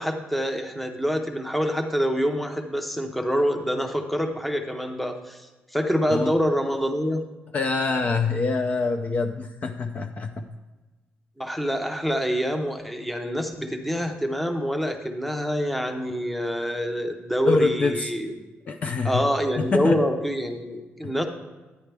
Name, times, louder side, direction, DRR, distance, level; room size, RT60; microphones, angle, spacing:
voice 1, 0.0-5.5 5.7-7.2 11.4-18.3 19.0-21.2, equal, ahead, 5 dB, 0.7 m, -26 dB
voice 2, 7.5-10.5 17.4-18.1 18.7-19.2 19.7-20.0 21.0-21.1, left 4 dB, 30° left, 6 dB, 0.4 m, -25 dB
10.5 x 9.7 x 3.4 m, 1.2 s
cardioid pair, 165°, 5 cm